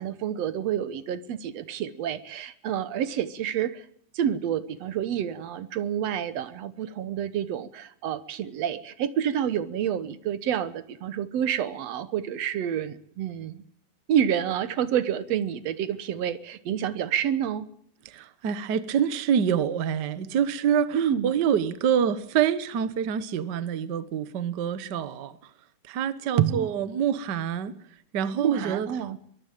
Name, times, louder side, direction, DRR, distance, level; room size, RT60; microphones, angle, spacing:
voice 1, 0.0-3.8 4.2-13.6 14.1-17.7 20.9-21.3 26.4-26.8 28.4-29.2, right 9 dB, 65° right, 1.9 m, -28 dB
voice 2, 18.0-25.4 25.9-27.7 28.1-28.9, right 8 dB, 85° right, 0.9 m, -26 dB
23.0 x 15.0 x 8.9 m
omnidirectional pair, 3.7 m